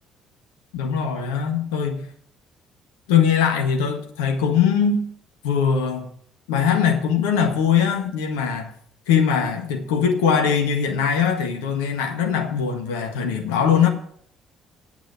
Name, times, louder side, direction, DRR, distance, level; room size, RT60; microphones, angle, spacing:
voice 1, 0.7-2.1 3.1-5.1 5.4-6.1 6.5-8.7 9.1-13.9, left 7 dB, 70° left, 1.7 m, -21 dB
9.1 x 8.1 x 9.1 m
figure-of-eight pair, 50°, 0 cm